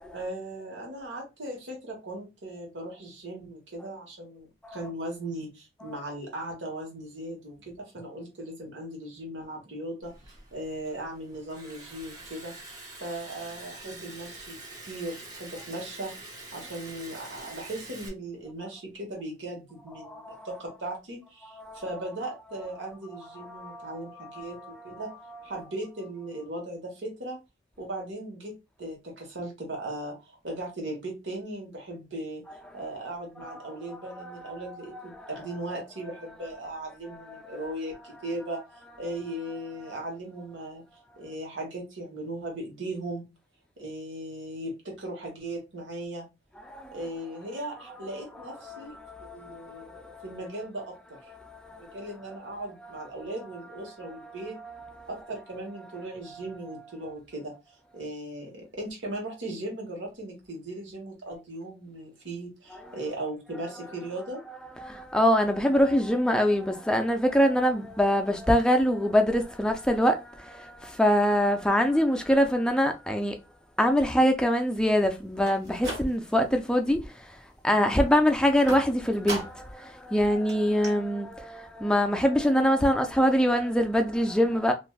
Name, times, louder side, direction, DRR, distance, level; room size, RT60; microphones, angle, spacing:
voice 1, 0.1-10.1 10.5-25.1 25.4-27.4 27.8-32.4 32.7-38.6 39.0-40.8 41.2-43.2 43.8-46.2 46.9-51.3 51.8-54.6 55.1-64.4, right 1 dB, 85° right, 1.2 m, -38 dB
Liquid, 10.0-18.1, right 2 dB, 20° right, 0.7 m, -45 dB
voice 2, 20.0-20.5 21.6-21.8 23.4-24.5 34.2-34.4 46.7-47.0 48.7-50.2 51.4-52.0 54.6-54.7 64.8-73.4 73.8-77.4 77.6-84.7, equal, 5° left, 0.3 m, -24 dB
sound 1, 75.3-76.5 76.9-77.4 78.7-79.8 80.1-80.2 80.5-80.6 80.8-80.9, right 1 dB, 60° right, 1.3 m, -37 dB
3.3 x 2.5 x 2.3 m
head